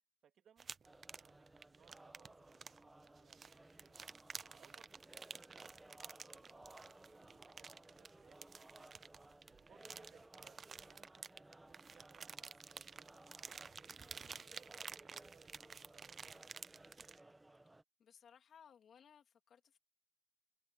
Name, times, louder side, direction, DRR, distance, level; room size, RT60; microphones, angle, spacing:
voice 1, 0.2-3.4 3.8-8.5 8.8-8.9 9.6-15.5 15.8-16.6, right 8 dB, 65° right, 2.3 m, -71 dB
sound 1, 0.6-17.2, right 5 dB, 40° right, 0.7 m, -52 dB
sound 2, 0.8-17.8, right 2 dB, 10° right, 1.3 m, -61 dB
voice 2, 18.0-19.8, left 8 dB, 60° left, 3.2 m, -63 dB
cardioid pair, 100°, 0 cm